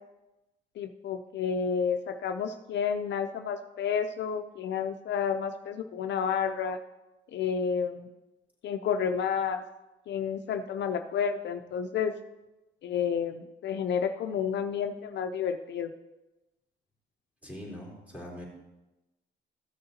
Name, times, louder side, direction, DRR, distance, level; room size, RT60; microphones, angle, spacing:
voice 1, 0.8-6.8 7.3-8.1 8.6-9.6 10.1-12.1 12.8-15.9, left 7 dB, 65° left, 7 dB, 0.5 m, -30 dB
voice 2, 17.4-18.4, left 1 dB, 5° right, -4 dB, 3.4 m, -42 dB
14.0 x 6.6 x 2.8 m, 1.0 s
cardioid pair, 90°, 20 cm